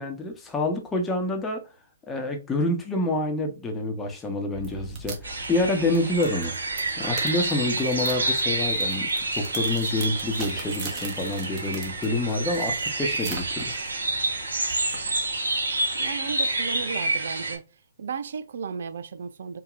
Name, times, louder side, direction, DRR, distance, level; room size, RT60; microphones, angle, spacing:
voice 1, 0.0-1.6 2.1-6.5 7.0-9.1 9.3-13.7, left 2 dB, 10° left, 1.0 m, -27 dB
sound 1, 4.5-15.3, right 4 dB, 30° right, 1.3 m, -42 dB
sound 2, 5.2-17.5, right 2 dB, 75° right, 2.1 m, -28 dB
voice 2, 16.0-17.6 18.0-19.6, right 6 dB, 60° right, 0.5 m, -34 dB
4.7 x 2.8 x 2.4 m
figure-of-eight pair, 130°, 0 cm